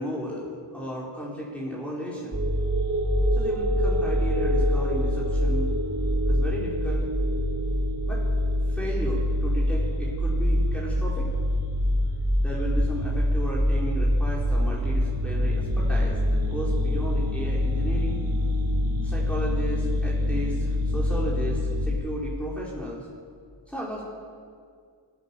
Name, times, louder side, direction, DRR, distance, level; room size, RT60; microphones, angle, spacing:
voice 1, 0.0-2.4 3.4-5.8 6.3-7.1 8.1-8.2 8.7-11.3 12.4-18.2 19.0-23.1 23.7-24.0, equal, ahead, -6 dB, 4.8 m, -34 dB
sound 1, 2.3-21.9, equal, 30° right, 4.3 m, -25 dB
28.0 x 15.5 x 7.2 m, 2.2 s
wide cardioid pair, 80°, 50 cm